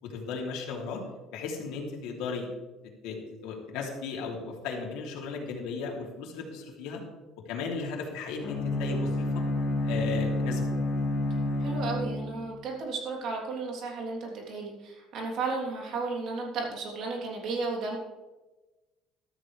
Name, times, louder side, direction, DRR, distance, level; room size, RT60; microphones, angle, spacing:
voice 1, 0.0-1.0 1.3-2.5 3.0-7.0 7.4-9.3 9.8-10.7, left 4 dB, 75° left, 0 dB, 3.1 m, -35 dB
Bowed string instrument, 8.4-12.6, left 1 dB, 35° left, 2.1 m, -29 dB
voice 2, 11.6-18.0, right 3 dB, 50° right, -1 dB, 3.3 m, -34 dB
14.0 x 13.0 x 3.4 m, 1.1 s
cardioid pair, 170°, 0 cm